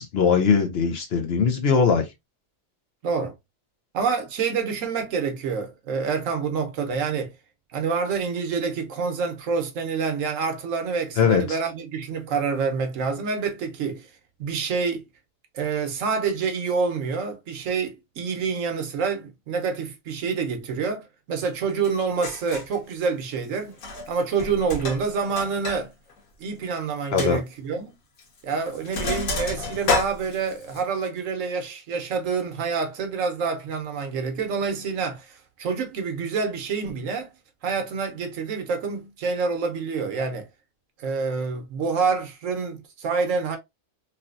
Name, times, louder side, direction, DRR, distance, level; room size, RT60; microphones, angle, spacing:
voice 1, 0.0-2.1 11.2-11.6 27.1-27.4, left 6 dB, 60° left, 0.8 m, -21 dB
voice 2, 3.0-3.3 3.9-7.3 7.7-14.1 14.4-15.0 15.5-23.8 24.1-25.9 26.4-27.9 28.4-37.3 37.6-40.5 41.0-43.6, right 5 dB, 75° right, 1.1 m, -27 dB
Sink (filling or washing), 21.8-21.9 22.2-22.8 23.7-24.1 24.4-25.8 26.1-26.2 26.6-26.7 27.2-27.3 28.2-28.4 28.7-30.8, left 3 dB, 85° left, 1.5 m, -29 dB
3.2 x 2.7 x 2.4 m
omnidirectional pair, 1.4 m